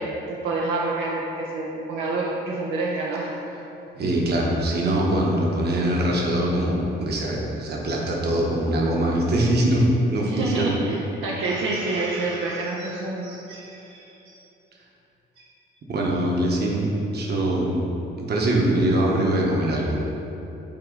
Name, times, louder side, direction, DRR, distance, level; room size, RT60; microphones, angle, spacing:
voice 1, 0.0-3.3 10.2-14.4, right 2 dB, 80° right, -4 dB, 0.7 m, -28 dB
voice 2, 4.0-9.8 10.1-10.7 15.9-17.8 18.2-20.0, right 1 dB, 55° right, -2 dB, 1.2 m, -23 dB
8.9 x 3.0 x 3.8 m, 3.0 s
cardioid pair, 90°, 20 cm